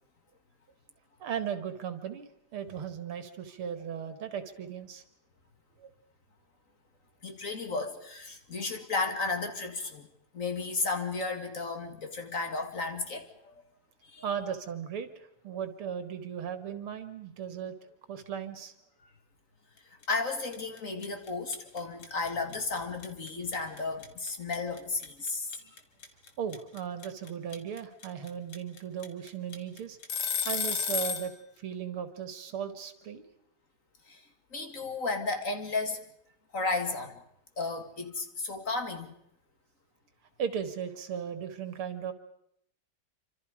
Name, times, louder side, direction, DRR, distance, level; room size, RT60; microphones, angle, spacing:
voice 1, 1.2-5.0 5.8-5.9 14.2-15.1 15.4-17.7 18.1-18.7 26.4-30.0 30.4-31.3 31.6-33.3 40.4-42.1, right 8 dB, 85° right, 9 dB, 2.7 m, -36 dB
voice 2, 7.2-10.1 10.3-13.5 14.0-14.3 20.1-25.5 34.1-34.2 34.5-36.0 36.5-37.2 37.6-39.1, left 3 dB, 40° left, 5 dB, 2.2 m, -33 dB
sound 1, 20.0-20.3 20.5-31.3, left 6 dB, 75° left, 2.8 m, -33 dB
27.5 x 25.5 x 5.1 m, 0.74 s
omnidirectional pair, 2.3 m